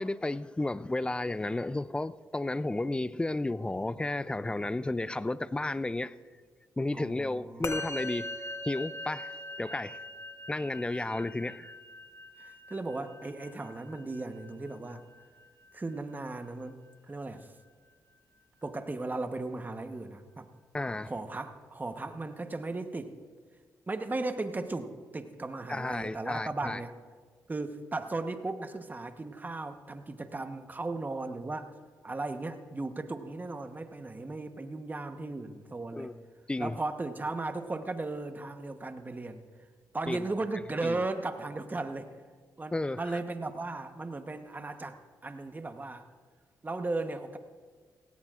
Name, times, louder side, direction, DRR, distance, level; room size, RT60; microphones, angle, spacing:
voice 1, 0.0-6.1 6.8-8.3 8.6-10.0 10.5-11.7 20.7-21.1 25.7-26.8 35.9-36.1 36.5-36.8 40.1-40.2 40.8-41.0 42.7-43.2, left 2 dB, 15° left, 0.4 m, -33 dB
voice 2, 6.9-7.7 12.4-15.1 15.7-17.5 18.6-20.5 21.0-23.1 23.9-26.9 27.5-31.7 32.0-36.1 36.6-39.4 39.9-42.1 42.6-45.0 45.2-46.0 46.6-47.4, right 2 dB, 25° right, 1.1 m, -36 dB
Musical instrument, 7.6-17.2, left 2 dB, 40° left, 1.1 m, -42 dB
17.5 x 17.0 x 2.5 m
cardioid pair, 65°, 7 cm